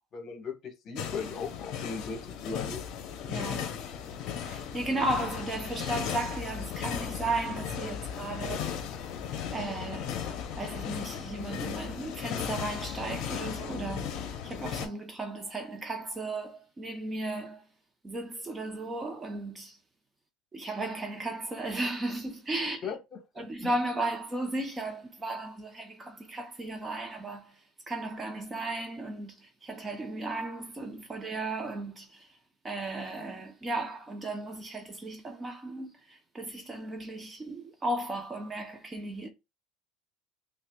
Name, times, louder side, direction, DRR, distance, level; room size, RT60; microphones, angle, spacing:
voice 1, 0.1-2.8 22.8-23.4, left 5 dB, 40° left, 1.1 m, -38 dB
sound 1, 0.9-14.9, left 8 dB, 55° left, 0.7 m, -36 dB
voice 2, 3.3-3.7 4.5-8.7 9.4-10.2 10.6-17.7 18.0-19.8 20.5-22.9 23.4-27.6 27.9-32.3 32.6-39.3, right 2 dB, 20° right, 0.6 m, -35 dB
5.5 x 2.2 x 2.2 m
supercardioid pair, 125°, 0 cm